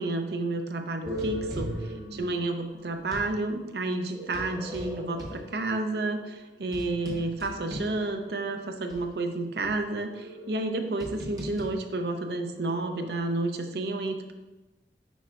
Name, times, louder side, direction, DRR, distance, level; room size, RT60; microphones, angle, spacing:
voice 1, 0.0-14.3, right 2 dB, 60° right, 6 dB, 0.6 m, -31 dB
sound 1, 1.0-3.4 4.1-8.5 8.9-9.0 9.6-13.2, equal, 20° right, 0.9 m, -39 dB
9.2 x 4.5 x 2.4 m, 1.1 s
head